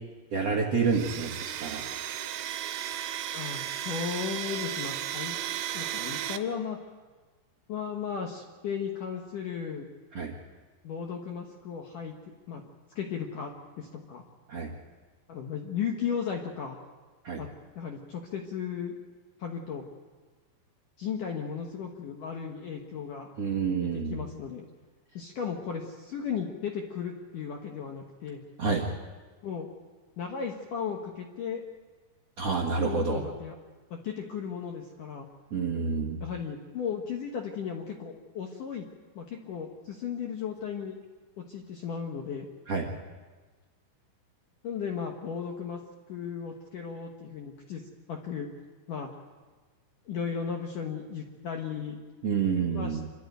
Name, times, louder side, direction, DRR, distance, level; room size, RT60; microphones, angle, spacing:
voice 1, 0.3-1.8 10.1-10.3 14.5-14.7 17.2-17.4 23.4-24.2 28.6-28.8 32.4-33.2 35.5-36.2 42.7-42.9 52.2-53.0, right 5 dB, 65° right, -2 dB, 1.6 m, -28 dB
Domestic sounds home sounds, 0.9-6.4, right 11 dB, 80° right, 3.4 m, -35 dB
voice 2, 3.3-5.4 5.7-6.8 7.7-9.9 10.8-12.1 12.5-12.6 13.0-14.2 15.3-16.8 17.4-17.5 17.8-18.9 19.4-19.8 21.0-23.3 23.9-24.6 25.1-28.4 29.4-29.7 30.2-31.6 32.9-33.6 33.9-35.3 36.2-38.9 39.2-41.0 41.4-42.5 44.6-45.8 46.1-47.8 48.1-48.5 48.9-49.1 50.1-52.0 52.7-53.0, left 7 dB, 70° left, 1 dB, 2.0 m, -35 dB
27.5 x 13.0 x 9.3 m, 1.4 s
omnidirectional pair, 5.6 m